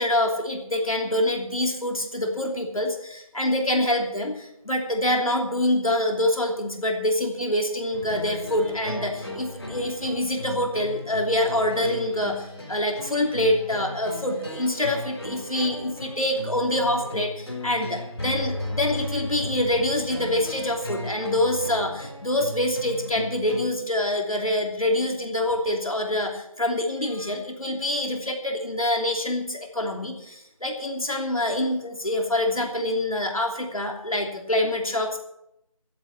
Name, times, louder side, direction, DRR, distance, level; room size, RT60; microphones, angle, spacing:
voice 1, 0.0-35.2, left 1 dB, 75° left, 2 dB, 3.0 m, -26 dB
sound 1, 7.9-23.7, left 1 dB, 50° left, 4.1 m, -36 dB
14.5 x 8.7 x 7.7 m, 0.80 s
figure-of-eight pair, 170°, 18 cm